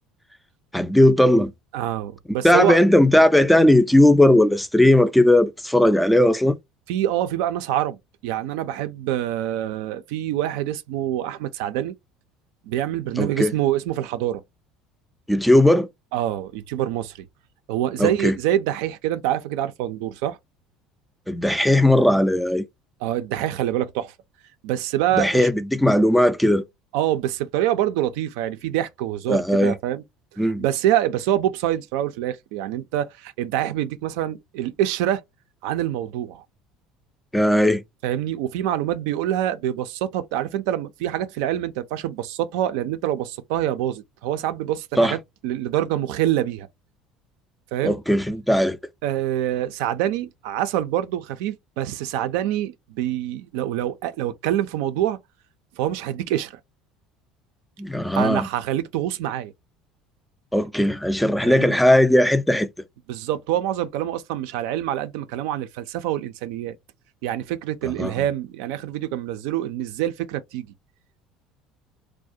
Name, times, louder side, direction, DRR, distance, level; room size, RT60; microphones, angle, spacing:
voice 1, 0.7-1.5 2.4-6.5 13.2-13.5 15.3-15.9 18.0-18.3 21.3-22.6 25.2-26.6 29.3-29.7 30.4-30.6 37.3-37.8 45.0-45.2 47.8-48.8 57.8-58.5 60.5-62.7 67.8-68.1, left 1 dB, 5° left, 0.3 m, -17 dB
voice 2, 1.7-2.8 6.9-11.9 12.7-14.4 16.1-17.1 17.7-20.4 23.0-24.1 24.6-25.5 26.9-30.0 30.4-35.2 35.6-36.4 38.0-46.7 47.7-48.0 49.0-55.2 55.8-56.5 58.1-59.5 61.4-61.8 63.1-66.8 67.2-70.7, right 12 dB, 80° right, 0.3 m, -25 dB
2.3 x 2.1 x 2.6 m
supercardioid pair, 95°, 0 cm